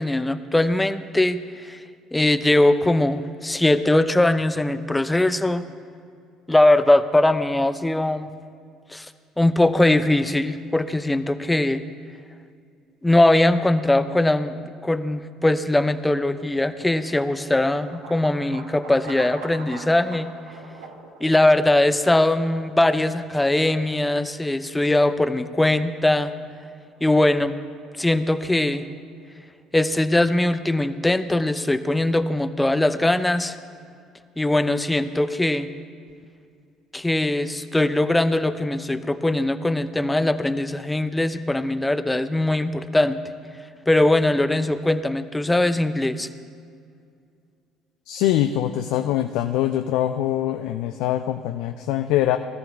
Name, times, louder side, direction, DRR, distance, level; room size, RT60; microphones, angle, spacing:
voice 1, 0.0-1.8 2.1-5.6 6.5-8.3 8.9-9.1 9.4-11.8 13.0-20.3 21.2-26.3 27.0-27.6 28.0-28.8 29.7-33.6 34.4-35.7 36.9-43.2 43.9-46.3, left 1 dB, 10° left, 12 dB, 0.6 m, -21 dB
sound 1, 16.4-29.6, right 4 dB, 80° right, 1.3 m, -45 dB
voice 2, 48.1-52.4, left 12 dB, 70° left, 8 dB, 0.4 m, -23 dB
20.0 x 13.5 x 3.4 m, 2.3 s
hypercardioid pair, 60°, 0 cm